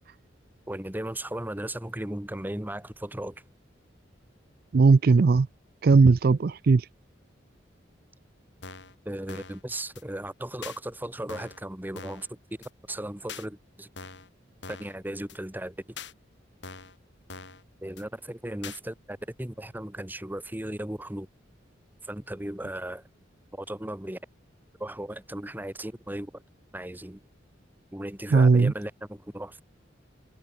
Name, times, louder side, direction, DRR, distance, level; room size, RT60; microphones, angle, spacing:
voice 1, 0.7-3.4 9.0-12.4 12.9-13.9 14.7-15.9 17.8-21.3 22.0-23.1 23.5-24.2 24.8-26.4 26.7-27.2 27.9-29.6, right 1 dB, 10° right, 1.2 m, -36 dB
voice 2, 4.7-5.5 5.8-6.9 28.3-28.7, right 4 dB, 50° right, 0.4 m, -18 dB
sound 1, 8.6-9.0 9.3-9.6 10.0-10.1 10.6-10.8 11.3-11.6 12.0-12.3 12.6-12.7 13.3-13.5 14.0-14.3 14.6-15.0 15.3-15.4 16.0-16.1 16.6-17.0 17.3-17.6 18.0-18.1 18.6-18.8, left 5 dB, 65° left, 3.3 m, -42 dB
head